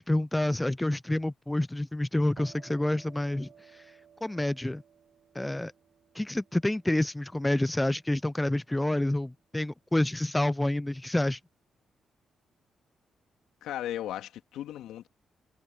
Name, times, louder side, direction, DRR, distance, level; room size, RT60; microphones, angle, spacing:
voice 1, 0.0-3.8 4.2-4.8 5.3-5.7 6.1-11.4, left 1 dB, 15° left, 0.4 m, -28 dB
sound 1, 2.3-9.8, right 8 dB, 65° right, 6.2 m, -58 dB
voice 2, 13.6-15.1, left 12 dB, 80° left, 2.8 m, -36 dB
supercardioid pair, 50°, 0 cm